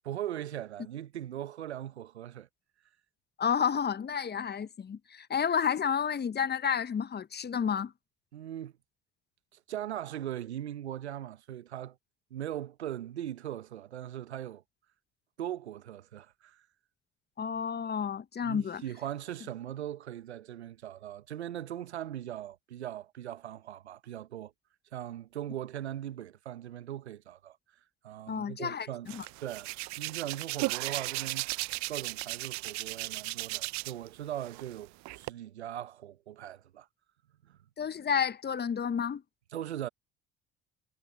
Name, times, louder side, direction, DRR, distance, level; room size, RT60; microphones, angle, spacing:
voice 1, 0.0-2.5 8.3-8.7 9.5-12.0 12.3-14.6 15.4-16.6 18.4-24.5 24.9-27.6 28.0-29.1 29.4-31.5 31.9-36.9 37.4-37.6 39.5-39.9, right 11 dB, 85° right, 1.1 m, -40 dB
voice 2, 3.4-7.9 17.4-18.8 28.3-29.2 37.8-39.2, left 7 dB, 30° left, 1.1 m, -31 dB
Hands, 29.1-34.1 34.4-35.3, right 22 dB, 60° right, 0.8 m, -36 dB
hypercardioid pair, 55°, 32 cm